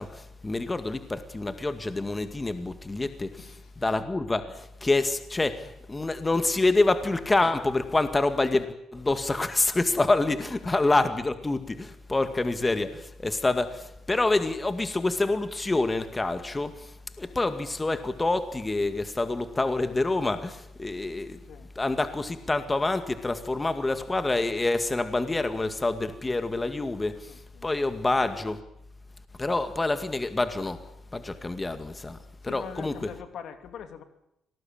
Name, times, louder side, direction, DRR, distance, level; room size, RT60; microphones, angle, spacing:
voice 1, 0.0-3.3 3.8-8.7 8.9-16.9 17.2-21.4 21.8-27.3 27.6-28.6 29.4-30.8 31.1-32.2 32.5-32.9, left 2 dB, 20° left, 10 dB, 2.1 m, -27 dB
voice 2, 3.4-3.7 10.4-10.7 17.2-17.5 21.4-21.7 27.3-27.7 32.4-34.0, left 8 dB, 70° left, 9 dB, 2.9 m, -44 dB
25.5 x 19.0 x 8.9 m, 0.82 s
cardioid pair, 90°, 0 cm